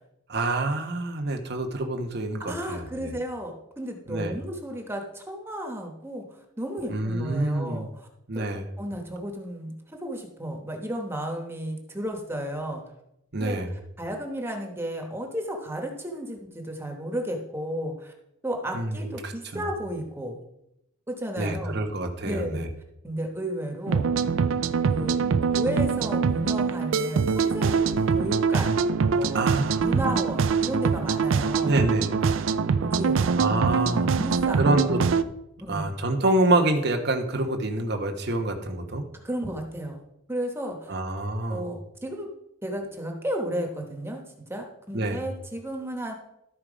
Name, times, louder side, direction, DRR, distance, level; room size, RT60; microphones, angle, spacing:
voice 1, 0.3-3.1 4.1-4.4 6.9-7.9 8.3-8.7 13.3-13.7 18.7-19.6 21.4-22.7 29.3-30.3 31.6-32.1 33.4-34.1 34.6-35.0 35.7-39.0 40.9-41.6 44.9-45.2, right 2 dB, 55° right, 4 dB, 1.1 m, -27 dB
voice 2, 2.4-6.2 6.6-8.1 8.3-8.5 8.8-12.8 13.4-13.6 14.0-18.1 18.4-20.4 21.1-21.8 22.2-22.6 23.0-24.1 24.9-25.2 25.5-28.8 29.1-29.5 29.8-31.7 32.8-33.4 34.0-34.6 35.6-35.9 39.2-40.0 40.3-41.0 41.5-42.3 42.6-44.2 44.5-46.1, right 1 dB, 10° right, 2 dB, 1.1 m, -33 dB
sound 1, 23.9-35.2, right 5 dB, 75° right, 0.4 m, -24 dB
13.0 x 4.4 x 5.0 m, 0.84 s
head